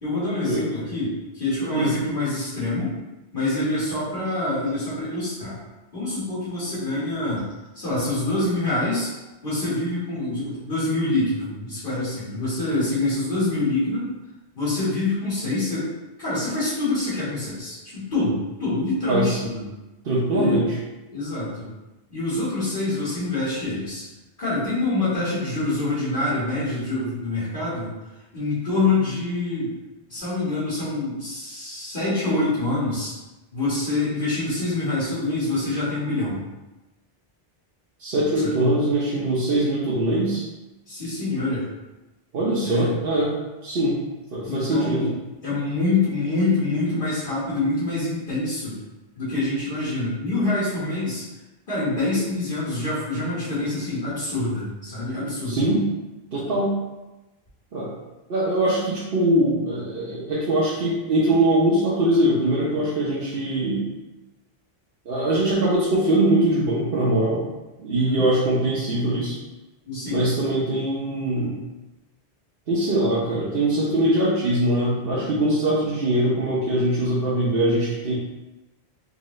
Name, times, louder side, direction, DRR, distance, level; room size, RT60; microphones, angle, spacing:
voice 1, 0.0-3.0 3.3-5.6 5.9-7.5 7.7-9.1 9.4-14.1 14.5-15.9 16.2-19.6 20.3-20.6 21.1-21.7 22.1-24.0 24.4-27.9 28.3-29.7 30.1-33.1 33.5-36.4 38.4-38.5 40.9-41.7 42.6-43.0 44.5-45.1 45.4-48.8 49.2-51.3 51.7-55.7 67.9-68.2 69.8-70.3, left 2 dB, 55° left, -14 dB, 1.8 m, -25 dB
voice 2, 19.1-19.4 20.0-20.7 38.0-40.4 42.3-43.3 43.6-44.0 44.3-45.1 55.5-55.9 56.3-56.8 57.7-57.9 58.3-63.9 65.1-67.4 67.8-69.4 70.1-71.6 72.7-78.1, right 1 dB, 65° right, -8 dB, 0.9 m, -22 dB
3.8 x 3.0 x 3.1 m, 1.1 s
omnidirectional pair, 1.1 m